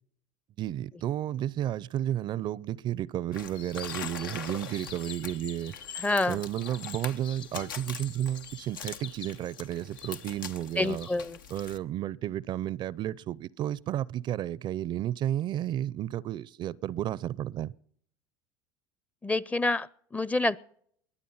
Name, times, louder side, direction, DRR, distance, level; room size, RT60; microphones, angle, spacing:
voice 1, 0.6-5.7 6.3-11.1 11.5-17.7, right 12 dB, 45° right, 0.5 m, -32 dB
sound 1, 3.3-11.8, left 7 dB, 90° left, 0.9 m, -43 dB
Winter Forest, 3.5-11.2, left 8 dB, 45° left, 1.1 m, -46 dB
voice 2, 6.0-6.4 10.8-11.4 19.2-20.6, left 2 dB, 15° left, 0.6 m, -27 dB
22.0 x 8.5 x 5.5 m
hypercardioid pair, 80°, 11 cm